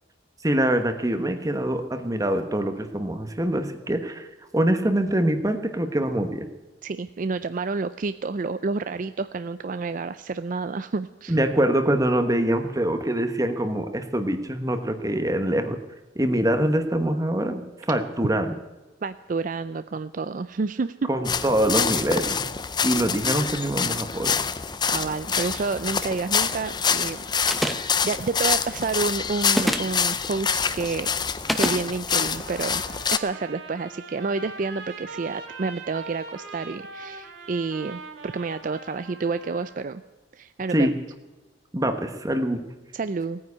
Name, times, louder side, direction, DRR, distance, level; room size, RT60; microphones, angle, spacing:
voice 1, 0.4-4.3 4.5-6.5 11.3-15.8 16.1-18.5 21.1-22.4 22.8-24.4 40.7-40.9 41.7-42.6, right 1 dB, 20° right, 8 dB, 1.2 m, -24 dB
voice 2, 6.8-11.4 19.0-21.1 24.9-27.2 28.0-31.1 31.5-32.8 33.1-40.0 40.3-40.9 42.9-43.4, right 4 dB, 45° right, 12 dB, 0.4 m, -29 dB
sound 1, 21.2-33.2, left 6 dB, 25° left, 0.6 m, -26 dB
sound 2, 27.5-28.0 29.5-30.0 31.5-31.8, equal, ahead, 0.9 m, -25 dB
Trumpet, 32.3-39.8, right 3 dB, 85° right, 3.8 m, -41 dB
17.5 x 9.6 x 8.4 m, 1.2 s
head